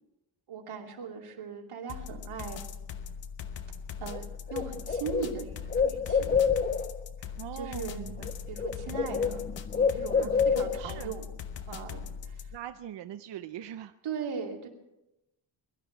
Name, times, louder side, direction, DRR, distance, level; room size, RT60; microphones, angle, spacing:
voice 1, 0.5-2.6 4.0-6.4 7.2-8.1 8.5-9.4 9.9-11.3 11.7-12.5 14.0-14.7, right 6 dB, 90° right, 0 dB, 2.9 m, -39 dB
sound 1, 1.9-12.6, left 7 dB, 60° left, 1.1 m, -40 dB
Bird, 4.1-4.2 4.5-7.0 8.1-8.3 8.6-11.0, left 6 dB, 20° left, 0.5 m, -28 dB
voice 2, 7.4-8.3 10.1-10.3 10.8-11.1 12.5-13.9, right 11 dB, 60° right, 9 dB, 0.6 m, -41 dB
22.5 x 12.0 x 4.6 m, 0.92 s
wide cardioid pair, 170°, 49 cm